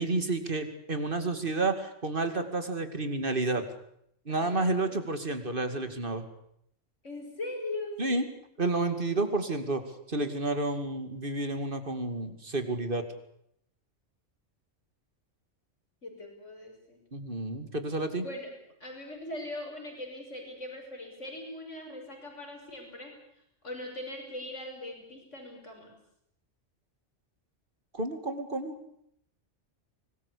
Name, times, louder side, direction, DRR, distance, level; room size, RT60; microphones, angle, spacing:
voice 1, 0.0-3.6 4.3-6.3 8.0-8.3 8.6-9.8 10.1-13.0 17.1-18.2 27.9-28.8, right 2 dB, 45° right, 8 dB, 2.6 m, -30 dB
voice 2, 4.3-5.0 7.0-8.0 16.0-17.0 18.2-18.5 18.8-23.1 23.6-25.9, left 1 dB, 85° left, 3 dB, 6.5 m, -40 dB
24.5 x 19.5 x 8.5 m, 0.72 s
omnidirectional pair, 1.2 m